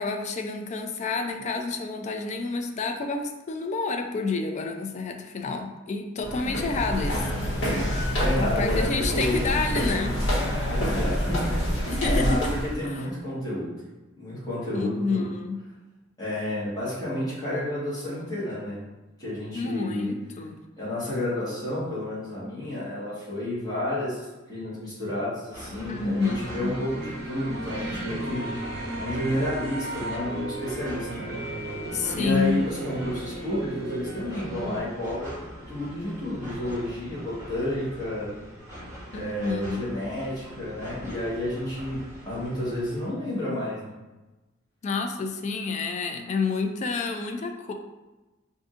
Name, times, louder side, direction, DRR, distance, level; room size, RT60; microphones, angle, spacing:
voice 1, 0.0-7.3 8.2-10.2 11.9-12.5 12.8-13.0 14.7-15.6 19.5-20.6 25.9-26.7 31.9-32.6 39.1-40.0 44.8-47.7, left 4 dB, 35° left, 5 dB, 0.3 m, -29 dB
voice 2, 6.1-6.6 8.1-9.5 10.7-11.7 12.0-12.4 12.8-13.7 14.2-15.2 16.2-18.8 19.2-20.2 20.8-28.5 29.0-31.4 32.1-38.4 39.1-42.0 42.2-44.0, left 1 dB, 20° left, -10 dB, 1.4 m, -31 dB
sound 1, 6.2-12.7, equal, 60° left, 1.4 m, -26 dB
sound 2, 25.5-43.1, equal, 15° right, 1.1 m, -43 dB
sound 3, 26.2-34.8, right 2 dB, 50° right, 0.6 m, -35 dB
4.8 x 2.6 x 2.5 m, 1.1 s
head